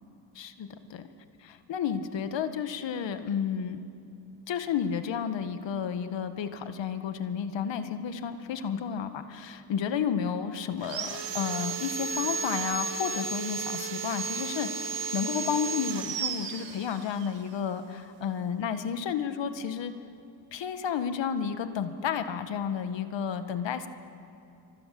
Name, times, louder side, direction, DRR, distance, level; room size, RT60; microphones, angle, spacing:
voice 1, 0.4-1.0 1.5-3.8 4.5-19.9 20.5-23.9, left 7 dB, 70° left, 8 dB, 1.9 m, -32 dB
Sawing, 10.8-17.3, right 5 dB, 70° right, 2.1 m, -34 dB
28.5 x 25.0 x 7.8 m, 2.9 s
cardioid pair, 85°, 45 cm